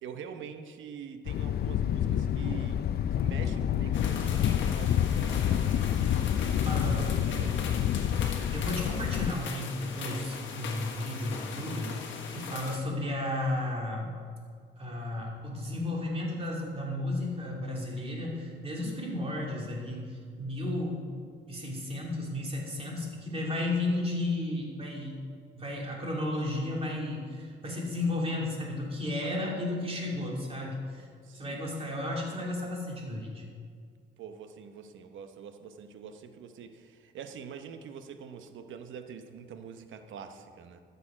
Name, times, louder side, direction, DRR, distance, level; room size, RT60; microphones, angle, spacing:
voice 1, 0.0-2.8 3.1-5.9 7.0-7.7 12.6-12.8 31.2-31.6 34.2-40.8, right 7 dB, 75° right, 8 dB, 0.9 m, -45 dB
Thunder, 1.2-9.3, left 10 dB, 55° left, 0.4 m, -28 dB
sound 1, 3.9-12.8, left 5 dB, 70° left, 1.3 m, -40 dB
voice 2, 6.6-7.5 8.2-14.1 14.8-21.1 21.5-25.2 25.5-31.1 31.3-33.4, left 1 dB, 30° right, -2 dB, 2.8 m, -33 dB
12.5 x 6.8 x 5.0 m, 2.1 s
cardioid pair, 90°, 20 cm